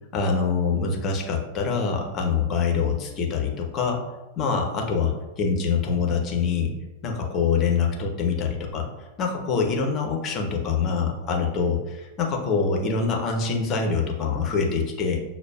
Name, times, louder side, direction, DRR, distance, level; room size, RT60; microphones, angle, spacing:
voice 1, 0.1-4.0 4.4-5.1 5.4-6.7 7.0-8.9 9.2-15.2, left 5 dB, 30° left, 1 dB, 0.7 m, -25 dB
6.4 x 2.2 x 2.3 m, 1.1 s
figure-of-eight pair, 90°, 0 cm